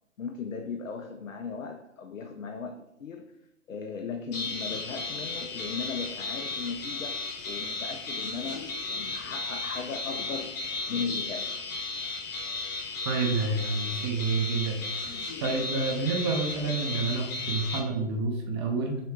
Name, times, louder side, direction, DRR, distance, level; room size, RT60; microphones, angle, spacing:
voice 1, 0.2-3.4 3.7-10.5 10.9-11.6, left 5 dB, 85° left, 6 dB, 0.6 m, -37 dB
sound 1, 4.3-17.8, left 3 dB, 35° left, 1.0 m, -35 dB
voice 2, 13.0-19.0, right 3 dB, 20° right, 1 dB, 0.4 m, -29 dB
6.4 x 2.3 x 3.5 m, 0.84 s
figure-of-eight pair, 125°, 38 cm